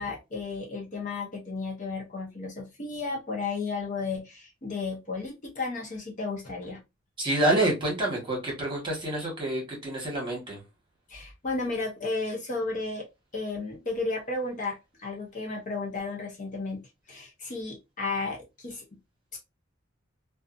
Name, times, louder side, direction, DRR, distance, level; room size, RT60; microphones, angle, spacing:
voice 1, 0.0-6.8 11.1-13.1 13.3-16.8 17.1-18.9 19.3-19.4, left 3 dB, 40° left, 0.7 m, -33 dB
voice 2, 7.2-10.6, right 1 dB, 25° right, 1.3 m, -27 dB
2.6 x 2.3 x 2.4 m
head